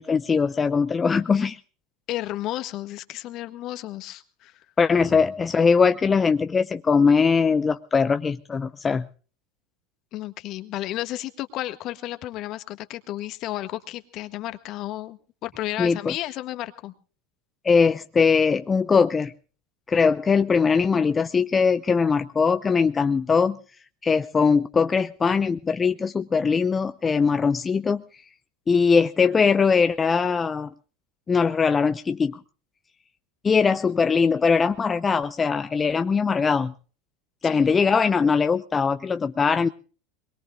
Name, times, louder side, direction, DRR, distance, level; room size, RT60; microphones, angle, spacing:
voice 1, 0.0-1.6 4.8-9.1 15.8-16.1 17.6-19.3 19.9-23.6 24.0-28.0 28.7-30.7 31.3-32.4 33.4-36.7 37.4-39.7, left 5 dB, 25° left, 10 dB, 0.7 m, -21 dB
voice 2, 2.1-4.5 10.1-16.9 37.5-37.8, left 15 dB, 50° left, 10 dB, 1.6 m, -33 dB
23.5 x 22.0 x 2.4 m, 0.40 s
hypercardioid pair, 85°, 0 cm